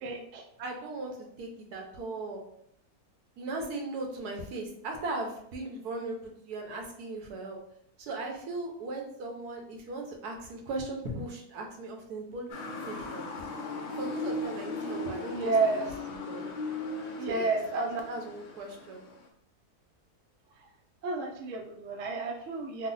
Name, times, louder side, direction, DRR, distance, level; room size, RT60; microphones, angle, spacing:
voice 1, 0.0-0.4 15.3-15.8 17.2-18.0 21.0-22.9, right 3 dB, 70° right, 2 dB, 0.8 m, -30 dB
voice 2, 0.6-2.4 3.4-6.2 6.5-7.6 8.0-13.2 13.9-15.7 16.3-16.5 17.3-19.0, right 2 dB, 85° right, 2 dB, 1.3 m, -38 dB
Motor vehicle (road) / Siren, 12.5-19.3, left 2 dB, 65° left, 0.7 m, -38 dB
3.2 x 2.1 x 3.8 m, 0.69 s
omnidirectional pair, 1.6 m